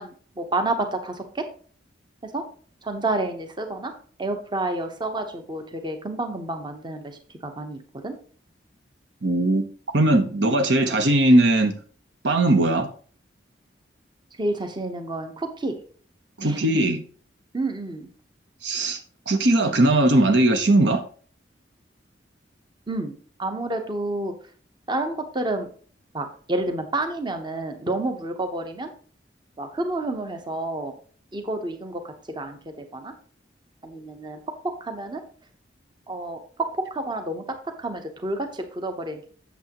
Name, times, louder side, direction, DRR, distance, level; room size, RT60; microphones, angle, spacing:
voice 1, 0.0-1.4 2.2-2.4 2.8-3.9 4.2-8.1 14.4-15.7 16.4-16.8 17.5-18.1 22.9-23.1 23.4-24.3 24.9-25.7 26.1-28.9 29.6-30.9 31.3-33.1 33.8-34.4 34.6-35.2 36.1-39.3, right 2 dB, 25° right, 6 dB, 0.9 m, -29 dB
voice 2, 9.2-9.7 9.9-11.8 12.2-12.9 16.4-17.0 18.6-19.0 19.3-21.0, right 1 dB, 70° right, 7 dB, 0.9 m, -19 dB
8.2 x 7.0 x 3.0 m, 0.43 s
head